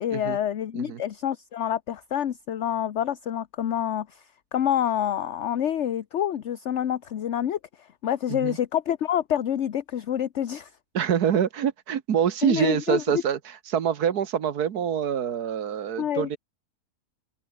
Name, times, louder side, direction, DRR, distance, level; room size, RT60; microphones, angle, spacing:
voice 1, 0.0-4.2 4.5-7.6 8.0-10.7 12.4-13.2 16.0-16.3, left 10 dB, 55° left, 1.0 m, -27 dB
voice 2, 10.9-16.4, right 8 dB, 70° right, 1.7 m, -25 dB
open air
omnidirectional pair, 1.7 m